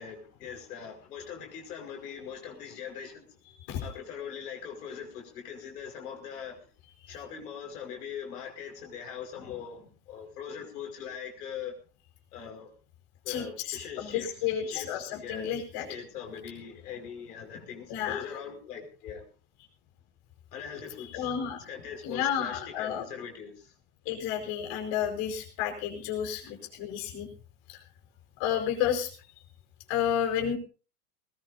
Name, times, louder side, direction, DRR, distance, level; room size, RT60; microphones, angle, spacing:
voice 1, 0.0-3.3 3.8-6.6 7.1-11.7 12.3-12.7 13.2-14.3 14.7-19.2 20.5-21.3 21.6-23.7 26.4-26.5, left 7 dB, 70° left, 5.6 m, -41 dB
voice 2, 13.3-15.9 17.9-18.3 21.1-21.6 22.0-23.0 24.0-27.3 27.7-27.8 28.4-29.1 29.9-30.6, left 9 dB, 50° left, 5.1 m, -31 dB
20.0 x 20.0 x 2.7 m
hypercardioid pair, 95°, 48 cm